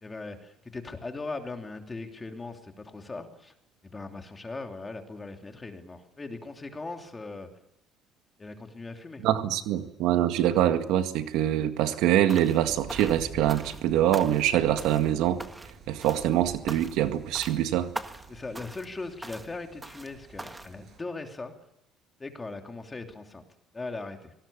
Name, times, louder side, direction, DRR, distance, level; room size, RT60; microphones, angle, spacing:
voice 1, 0.0-3.5 3.8-7.5 8.4-9.2 18.3-21.5 22.2-23.4 23.7-24.3, left 3 dB, 15° left, 4 dB, 3.0 m, -39 dB
voice 2, 9.2-15.4 15.9-17.9, right 12 dB, 85° right, 8 dB, 1.9 m, -24 dB
sound 1, 12.3-12.6 12.9-13.8 14.1-14.5 14.8-15.1 15.4-16.3 16.7-17.1 17.3-17.6 17.9-18.3 18.5-18.9 19.2-19.5 19.8-20.1 20.4-20.7, right 2 dB, 10° right, 1.6 m, -41 dB
sound 2, 12.6-21.0, right 5 dB, 40° right, 7.1 m, -48 dB
25.5 x 19.0 x 8.7 m, 0.89 s
cardioid pair, 135°, 0 cm